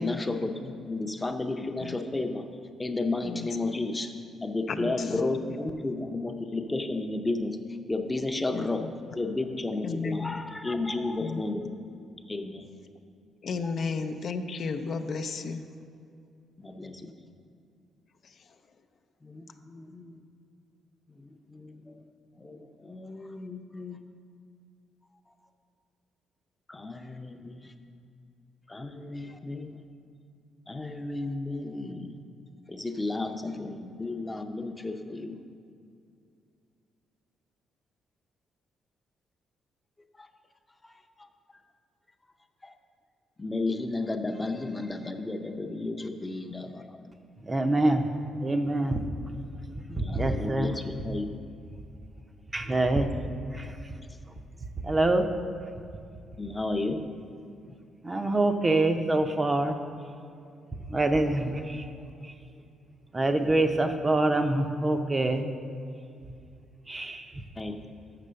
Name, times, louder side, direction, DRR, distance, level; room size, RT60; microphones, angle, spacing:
voice 1, 0.0-2.5 2.8-4.1 4.4-7.6 7.9-11.7 12.3-12.7 13.6-13.7 16.6-17.3 19.2-20.2 21.2-22.0 22.4-24.0 26.7-27.7 28.7-29.8 30.7-32.2 32.7-35.4 40.2-40.3 40.8-41.0 42.6-42.7 43.4-47.1 49.9-51.3 56.4-57.0 67.6-67.8, left 2 dB, 15° left, 6 dB, 0.7 m, -33 dB
voice 2, 4.7-5.2 8.5-8.9 9.8-10.4 11.2-11.4 13.4-15.6, left 4 dB, 55° left, 7 dB, 0.5 m, -33 dB
voice 3, 47.4-48.1 48.4-49.0 50.0-50.8 52.5-53.1 53.5-53.9 54.8-55.3 58.0-59.7 60.9-61.9 62.2-62.3 63.1-65.4 66.9-67.4, right 2 dB, 25° right, 6 dB, 0.6 m, -25 dB
6.8 x 6.6 x 6.4 m, 2.4 s
cardioid pair, 90°, 0 cm